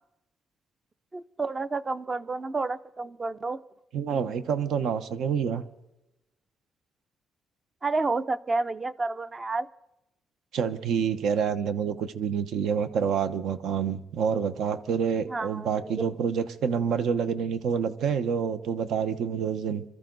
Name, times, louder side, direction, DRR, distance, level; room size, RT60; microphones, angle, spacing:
voice 1, 1.1-3.6 7.8-9.7 15.3-15.9, right 3 dB, 20° right, 15 dB, 0.5 m, -30 dB
voice 2, 3.9-5.6 10.5-19.8, right 7 dB, 75° right, 11 dB, 1.1 m, -27 dB
25.5 x 13.5 x 4.0 m, 0.90 s
cardioid pair, 150°, 0 cm